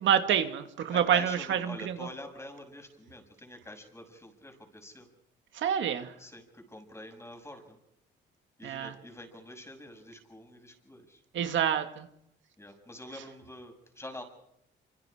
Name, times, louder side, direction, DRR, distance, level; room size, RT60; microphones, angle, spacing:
voice 1, 0.0-1.9 5.5-6.1 8.6-8.9 11.3-12.1, right 9 dB, 75° right, 7 dB, 2.1 m, -27 dB
voice 2, 0.9-5.1 6.2-7.8 8.6-11.2 12.6-14.2, left 1 dB, 15° left, 5 dB, 6.4 m, -46 dB
26.5 x 26.0 x 5.0 m, 0.78 s
cardioid pair, 90°, 20 cm